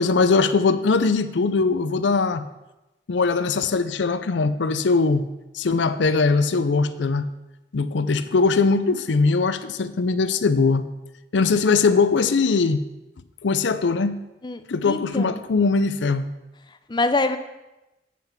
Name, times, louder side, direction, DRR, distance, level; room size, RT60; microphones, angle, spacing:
voice 1, 0.0-2.4 3.1-5.3 5.5-7.3 7.7-10.9 11.3-12.8 13.4-14.2 14.7-16.3, left 4 dB, 85° left, 13 dB, 0.5 m, -21 dB
voice 2, 14.4-15.4 16.9-17.4, left 2 dB, 25° left, 9 dB, 0.5 m, -25 dB
8.5 x 5.8 x 5.8 m, 1.0 s
head